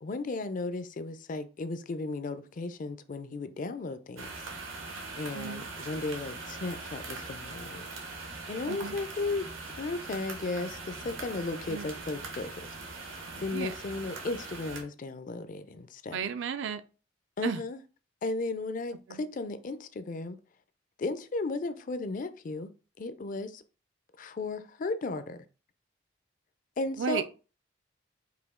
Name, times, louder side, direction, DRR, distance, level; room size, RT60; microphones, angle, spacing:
voice 1, 0.0-4.3 4.8-7.8 8.5-9.5 9.8-12.7 13.0-16.2 17.4-17.8 18.2-20.4 21.0-22.7 23.0-23.6 24.2-25.4 26.8-27.3, left 3 dB, 40° left, 0.4 m, -35 dB
sound 1, 4.2-14.8, right 3 dB, 85° right, 1.1 m, -41 dB
voice 2, 5.3-5.7 8.7-9.0 11.7-11.9 13.5-13.7 16.1-16.8 17.4-17.6 19.1-19.2 27.0-27.3, right 6 dB, 70° right, 0.4 m, -33 dB
5.0 x 2.7 x 3.6 m
head